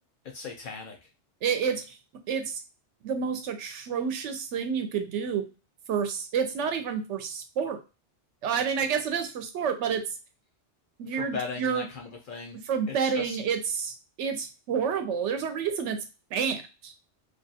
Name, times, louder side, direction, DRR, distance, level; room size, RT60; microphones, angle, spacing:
voice 1, 0.3-1.0 11.1-12.6 13.0-13.4, left 5 dB, 60° left, 2 dB, 0.6 m, -37 dB
voice 2, 1.4-2.0 2.3-2.6 3.0-5.4 5.9-7.8 8.4-10.0 11.0-11.8 12.7-16.0 16.3-16.9, right 6 dB, 85° right, 7 dB, 0.9 m, -29 dB
2.4 x 2.3 x 2.7 m, 0.31 s
omnidirectional pair, 1.2 m